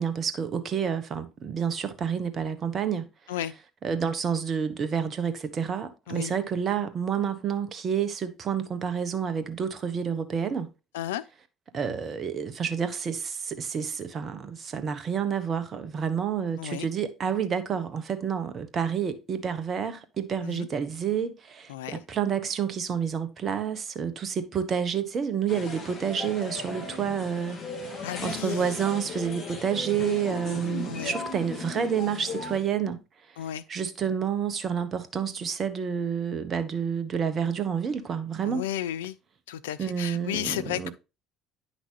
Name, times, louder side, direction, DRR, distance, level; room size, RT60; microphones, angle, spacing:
voice 1, 0.0-3.1 3.8-10.7 11.7-33.0 33.7-38.7 39.8-40.9, right 7 dB, 40° right, 1.2 m, -29 dB
voice 2, 21.7-22.0 28.0-28.7 30.8-31.1 33.4-33.6 38.4-39.2 39.5-40.9, left 11 dB, 75° left, 0.5 m, -33 dB
sound 1, 25.5-32.6, left 4 dB, 50° left, 2.9 m, -37 dB
9.7 x 5.9 x 2.9 m
figure-of-eight pair, 55°, 0 cm